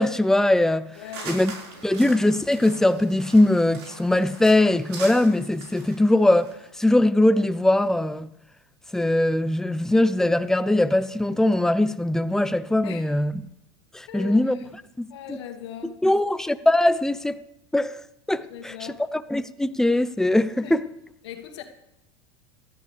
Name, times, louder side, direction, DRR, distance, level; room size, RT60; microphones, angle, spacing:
voice 1, 0.0-0.9 1.3-1.5 1.8-6.5 6.8-8.3 8.9-13.4 13.9-14.6 15.0-15.4 16.0-17.4 17.7-18.0 18.3-18.7 19.1-20.9, left 1 dB, 5° left, 0.6 m, -21 dB
sound 1, 0.9-6.7, right 4 dB, 80° right, 4.8 m, -42 dB
voice 2, 1.0-1.5 1.9-2.0 12.8-13.0 14.1-14.6 15.1-16.0 18.5-19.0 20.6-20.7 21.2-21.6, left 10 dB, 80° left, 2.0 m, -39 dB
18.0 x 13.0 x 3.4 m
supercardioid pair, 110°, 14 cm